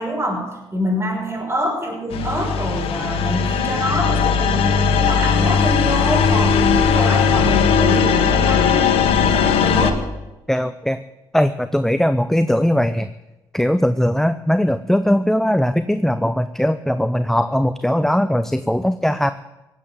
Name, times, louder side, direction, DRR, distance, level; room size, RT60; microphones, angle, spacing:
voice 1, 0.0-10.0, equal, 25° right, -1 dB, 6.0 m, -25 dB
sound 1, 2.1-9.9, left 6 dB, 75° left, 1.3 m, -18 dB
voice 2, 10.5-11.0 11.3-13.1 13.5-19.3, equal, 5° left, 11 dB, 0.7 m, -19 dB
17.5 x 7.9 x 9.0 m, 1.0 s
supercardioid pair, 55°, 10 cm